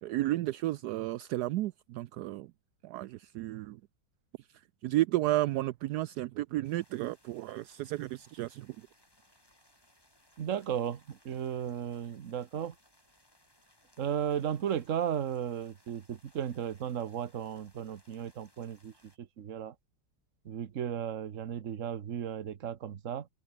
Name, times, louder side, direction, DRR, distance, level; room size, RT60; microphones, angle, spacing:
voice 1, 0.0-2.5 2.8-3.8 4.8-8.8, right 16 dB, 75° right, 1.0 m, -32 dB
sound 1, 6.6-19.2, left 1 dB, 10° left, 5.2 m, -66 dB
voice 2, 10.4-12.7 14.0-19.7 20.4-23.3, right 9 dB, 45° right, 1.3 m, -35 dB
omnidirectional pair, 2.1 m